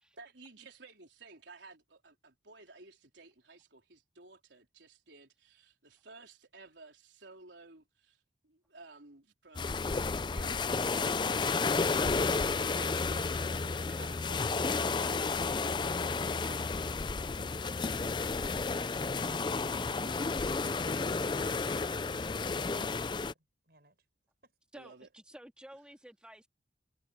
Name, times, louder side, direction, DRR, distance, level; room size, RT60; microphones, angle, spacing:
voice 1, 0.1-9.8 10.2-11.1 12.2-16.7 19.0-19.3 24.7-25.1, right 3 dB, 85° right, 4.1 m, -54 dB
sound 1, 9.5-23.3, left 4 dB, 25° left, 0.4 m, -32 dB
voice 2, 16.8-24.1 24.4-24.5, right 2 dB, 60° right, 6.1 m, -61 dB
voice 3, 24.7-26.5, equal, 5° right, 2.2 m, -52 dB
head